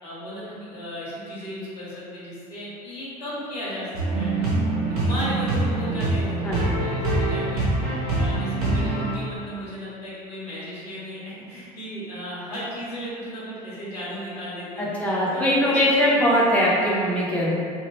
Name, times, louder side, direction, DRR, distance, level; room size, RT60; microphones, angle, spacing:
voice 1, 0.0-3.9 4.1-4.5 4.9-7.7 8.1-16.3, equal, 80° left, -9 dB, 1.1 m, -35 dB
sound 1, 3.9-9.1, right 2 dB, 65° right, 0.9 m, -24 dB
voice 2, 6.4-6.8 14.8-17.5, equal, 5° left, -6 dB, 0.6 m, -21 dB
2.8 x 2.2 x 3.1 m, 2.3 s
figure-of-eight pair, 65°, 20 cm